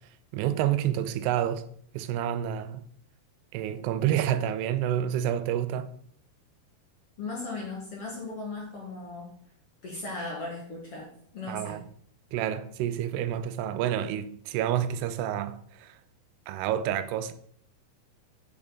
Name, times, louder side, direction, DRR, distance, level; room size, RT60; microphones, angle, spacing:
voice 1, 0.3-1.7 1.9-2.8 3.5-5.9 11.5-11.8 12.3-16.0 16.5-17.3, right 11 dB, 85° right, 2.7 m, -29 dB
voice 2, 7.2-9.3 9.8-11.8, left 3 dB, 45° left, 2.1 m, -37 dB
9.1 x 7.0 x 4.0 m
omnidirectional pair, 4.7 m